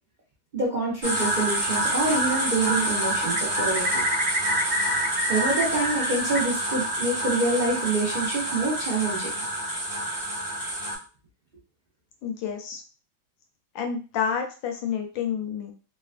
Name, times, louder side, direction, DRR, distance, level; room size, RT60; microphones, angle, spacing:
voice 1, 0.5-4.0 5.3-9.3, right 3 dB, 75° right, -6 dB, 0.4 m, -26 dB
sound 1, 1.0-11.0, right 1 dB, 10° left, 0.5 m, -27 dB
Bird, 2.7-6.4 6.7-7.5, equal, 45° right, 0.9 m, -31 dB
voice 2, 12.2-12.8 13.7-15.7, left 7 dB, 75° left, 3 dB, 1.2 m, -29 dB
3.3 x 2.3 x 2.4 m, 0.34 s
omnidirectional pair, 2.2 m